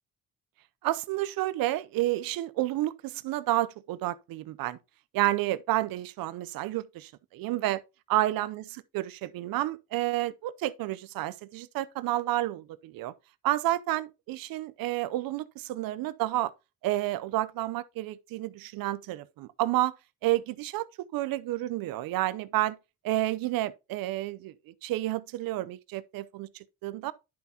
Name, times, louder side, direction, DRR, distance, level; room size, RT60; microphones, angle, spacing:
voice 1, 0.8-4.8 5.1-7.8 8.1-13.1 13.4-16.5 16.8-19.9 20.2-22.8 23.0-27.1, right 16 dB, 75° right, 0.7 m, -30 dB
10.5 x 5.7 x 2.8 m
supercardioid pair, 55°, 35 cm